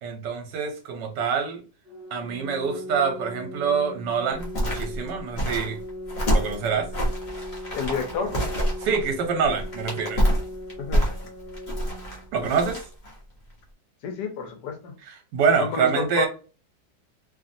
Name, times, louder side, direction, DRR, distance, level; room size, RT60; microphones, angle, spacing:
voice 1, 0.0-1.6 2.1-5.8 6.3-6.9 8.8-10.2 12.3-12.8 15.0-16.3, right 6 dB, 75° right, 1.4 m, -26 dB
Organ, 1.8-12.8, left 1 dB, ahead, 0.5 m, -40 dB
sound 1, 4.3-13.2 13.5-13.6, equal, 30° left, 0.9 m, -27 dB
voice 2, 7.7-8.4 10.8-11.0 14.0-14.9 15.6-16.3, left 5 dB, 75° left, 1.3 m, -29 dB
3.2 x 2.5 x 2.6 m
omnidirectional pair, 1.9 m